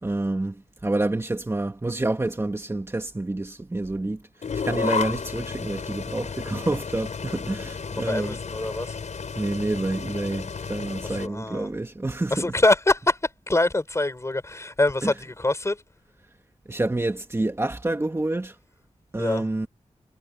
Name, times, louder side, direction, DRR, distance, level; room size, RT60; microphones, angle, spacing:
voice 1, 0.0-4.2 4.5-8.4 9.3-12.5 15.0-15.1 16.7-18.6 19.1-19.7, right 2 dB, 20° right, 2.1 m, -28 dB
sound 1, 4.4-11.3, left 5 dB, 75° left, 4.8 m, -32 dB
voice 2, 7.9-9.0 11.0-11.7 12.3-15.8 19.2-19.5, left 2 dB, 25° left, 5.4 m, -24 dB
wide cardioid pair, 115°, 12 cm